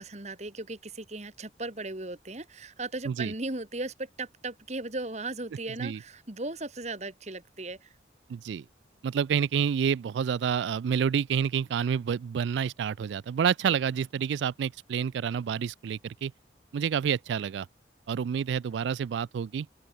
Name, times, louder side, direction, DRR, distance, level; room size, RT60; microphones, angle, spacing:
voice 1, 0.0-7.9 13.7-13.8, right 2 dB, 40° right, 1.9 m, -37 dB
voice 2, 8.3-8.7 9.0-16.3 16.7-17.7 18.1-19.7, right 7 dB, 80° right, 0.3 m, -28 dB
open air
head